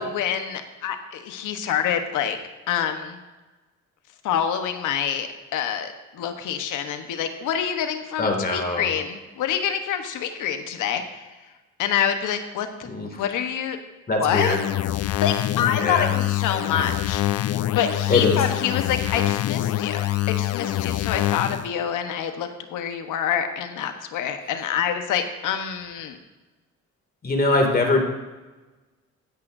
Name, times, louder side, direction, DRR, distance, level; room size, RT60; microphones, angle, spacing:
voice 1, 0.0-2.4 2.7-3.2 4.2-11.3 11.8-12.9 13.2-13.8 14.2-14.6 15.0-26.2, left 8 dB, 85° left, 7 dB, 1.1 m, -27 dB
voice 2, 8.2-8.9 12.8-13.2 14.1-14.6 15.8-16.1 18.1-18.4 27.2-28.0, left 2 dB, 30° left, 2 dB, 2.4 m, -22 dB
sound 1, 14.3-21.7, left 13 dB, 55° left, 0.5 m, -25 dB
15.0 x 10.0 x 2.7 m, 1.2 s
cardioid pair, 90°, 30 cm